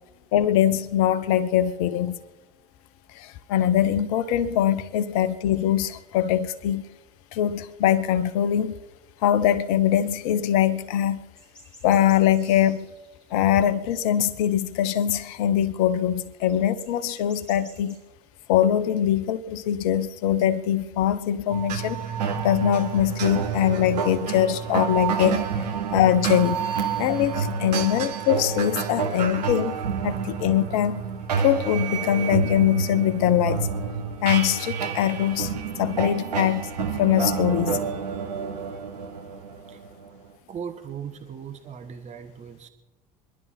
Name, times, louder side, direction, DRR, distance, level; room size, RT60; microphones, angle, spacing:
voice 1, 0.3-2.2 3.1-6.8 7.3-8.7 9.2-11.2 11.8-12.9 13.3-18.0 18.5-22.0 22.4-25.5 25.9-26.6 27.0-29.8 30.0-31.0 31.4-33.7 34.2-35.5 35.8-37.8, left 10 dB, 60° left, 0.9 m, -22 dB
sound 1, 11.4-14.0 14.3-15.0 15.8-15.9 16.1-16.2 16.5-18.0, equal, 5° left, 5.3 m, -51 dB
sound 2, 21.5-40.3, right 6 dB, 75° right, 1.5 m, -29 dB
voice 2, 40.5-42.7, right 7 dB, 35° right, 1.5 m, -38 dB
26.5 x 11.5 x 4.4 m
figure-of-eight pair, 60°, 21 cm